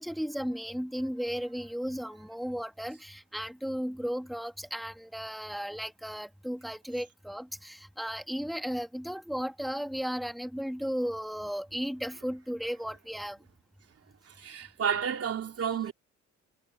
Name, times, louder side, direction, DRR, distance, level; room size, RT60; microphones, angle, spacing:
voice 1, 0.0-13.4, equal, ahead, 2.3 m, -35 dB
voice 2, 14.3-15.9, right 7 dB, 50° right, 3.3 m, -31 dB
cardioid pair, 90°, 30 cm